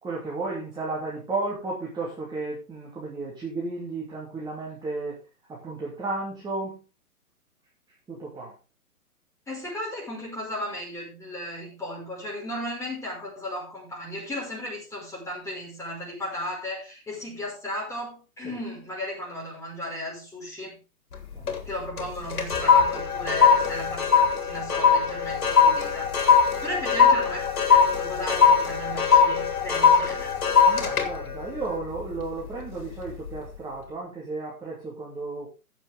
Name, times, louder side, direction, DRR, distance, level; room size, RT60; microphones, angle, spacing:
voice 1, 0.0-5.1 5.5-6.8 8.1-8.5 18.4-18.6 21.3-21.5 30.7-35.5, right 3 dB, 10° right, 2.9 m, -33 dB
voice 2, 9.5-20.8 21.6-26.4 26.6-30.3, left 1 dB, 5° left, 5.6 m, -35 dB
sound 1, 21.1-21.7 22.0-32.5 33.0-33.3, left 6 dB, 65° left, 3.0 m, -21 dB
16.0 x 7.1 x 3.7 m
figure-of-eight pair, 130°, 45 cm